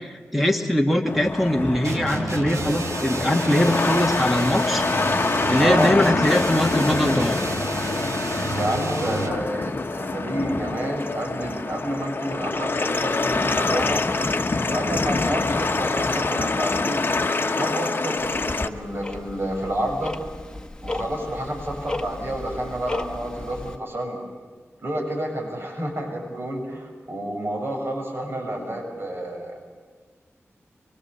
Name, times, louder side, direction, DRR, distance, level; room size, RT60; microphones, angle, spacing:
voice 1, 0.0-4.8 5.5-7.4, left 1 dB, ahead, 3 dB, 1.8 m, -22 dB
sound 1, 1.1-18.7, left 3 dB, 45° left, 1.1 m, -25 dB
sound 2, 1.8-9.4, right 3 dB, 80° right, 1.6 m, -31 dB
voice 2, 5.6-6.0 8.5-14.0 14.6-17.0 17.5-20.1 20.8-24.2 24.8-29.5, right 1 dB, 50° right, 0 dB, 7.3 m, -29 dB
Tick-tock, 18.2-23.8, left 2 dB, 15° left, 1.5 m, -35 dB
24.5 x 23.5 x 7.0 m, 1.5 s
wide cardioid pair, 75°, 5 cm